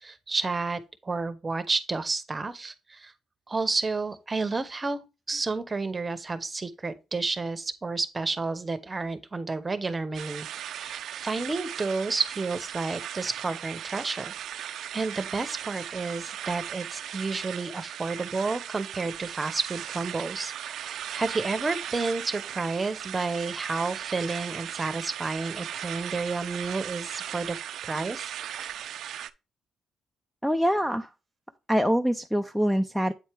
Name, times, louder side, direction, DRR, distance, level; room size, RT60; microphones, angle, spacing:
voice 1, 0.0-3.1 3.5-5.0 5.3-27.6 27.9-28.3, right 3 dB, 25° right, 0.8 m, -31 dB
sound 1, 10.1-29.3, right 10 dB, 75° right, 0.4 m, -37 dB
voice 2, 30.4-31.1 31.7-33.1, equal, ahead, 0.4 m, -24 dB
8.3 x 4.3 x 3.4 m
cardioid pair, 90°, 0 cm